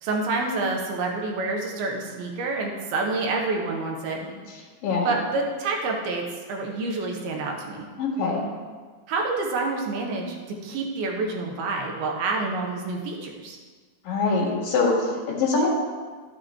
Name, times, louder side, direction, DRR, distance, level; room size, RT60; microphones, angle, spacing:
voice 1, 0.0-4.2 5.0-7.9 9.1-10.4 10.6-13.6, right 3 dB, 90° right, 0 dB, 3.0 m, -28 dB
voice 2, 4.8-5.1 8.0-8.4 14.0-15.7, left 3 dB, 70° left, -3 dB, 3.3 m, -23 dB
12.5 x 7.5 x 3.1 m, 1.5 s
omnidirectional pair, 4.3 m